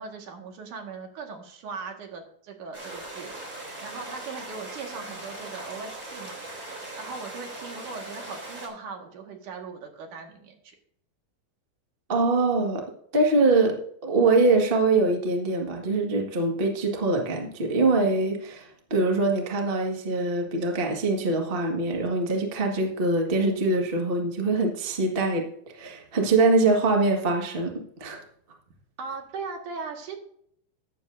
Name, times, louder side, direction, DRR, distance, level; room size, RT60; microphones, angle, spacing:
voice 1, 0.0-3.5 3.8-6.4 6.7-10.8 29.0-30.2, right 4 dB, 60° right, 2 dB, 3.1 m, -39 dB
sound 1, 2.7-8.7, right 2 dB, 25° right, 3.2 m, -39 dB
voice 2, 12.1-12.8 13.1-25.5 25.7-28.2, right 3 dB, 75° right, 1 dB, 0.5 m, -23 dB
13.5 x 10.0 x 2.7 m, 0.65 s
omnidirectional pair, 4.4 m